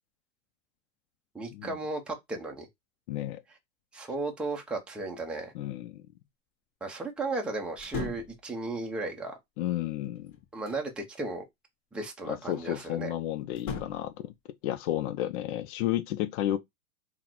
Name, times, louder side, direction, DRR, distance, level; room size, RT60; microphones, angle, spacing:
voice 1, 1.3-2.7 3.9-5.5 6.8-9.4 10.5-11.4 11.9-13.1, right 3 dB, ahead, 0.5 m, -35 dB
voice 2, 3.1-3.4 5.5-6.0 9.6-10.3 12.3-14.3 14.6-16.6, left 13 dB, 50° left, 0.5 m, -32 dB
sound 1, 7.8-8.4 10.0-10.9 13.5-14.1, left 5 dB, 35° left, 1.5 m, -38 dB
3.8 x 2.1 x 4.4 m
hypercardioid pair, 125°, 43 cm